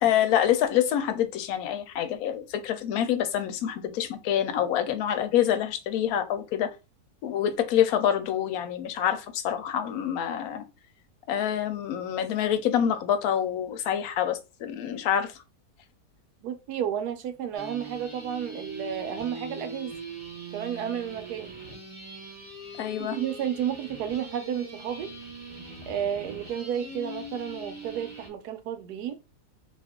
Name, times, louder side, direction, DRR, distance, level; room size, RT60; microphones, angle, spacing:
voice 1, 0.0-6.7 7.2-10.6 11.3-15.4 22.8-23.2, left 10 dB, 70° left, 1.0 m, -26 dB
voice 2, 16.4-19.9 20.5-21.5 23.0-25.1 25.9-29.1, right 9 dB, 85° right, 1.2 m, -32 dB
sound 1, 17.5-28.3, right 2 dB, 25° right, 0.8 m, -41 dB
2.8 x 2.5 x 3.5 m
omnidirectional pair, 1.7 m